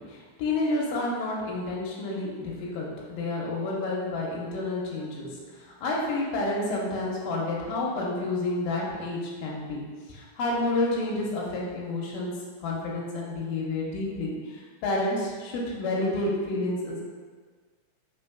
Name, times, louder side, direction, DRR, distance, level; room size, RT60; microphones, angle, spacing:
voice 1, 0.0-17.0, left 2 dB, 85° left, -4 dB, 2.4 m, -30 dB
5.3 x 3.8 x 2.2 m, 1.5 s
omnidirectional pair, 3.9 m